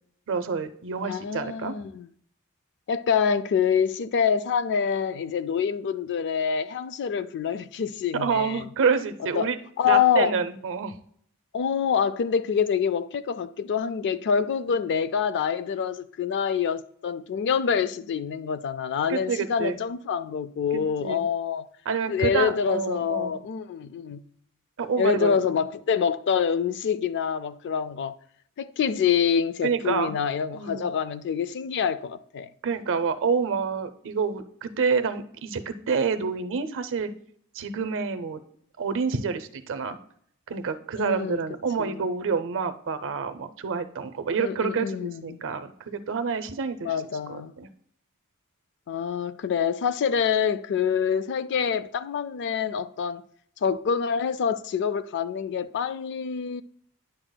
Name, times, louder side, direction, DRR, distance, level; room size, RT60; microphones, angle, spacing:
voice 1, 0.3-1.7 8.1-9.6 9.8-11.0 19.1-19.8 20.7-21.2 21.9-23.3 24.8-25.6 29.6-30.1 30.5-30.9 32.6-37.1 37.5-38.4 38.8-40.0 40.5-46.9 47.3-47.7, right 5 dB, 60° right, 0.6 m, -28 dB
voice 2, 1.0-2.1 2.9-8.6 9.4-9.5 9.8-10.3 11.5-21.7 22.1-24.2 25.0-28.2 28.6-32.5 41.0-41.4 41.8-42.0 44.4-45.4 46.8-47.5 48.9-53.2 53.6-56.6, left 7 dB, 50° left, 0.3 m, -26 dB
9.8 x 7.7 x 2.2 m
head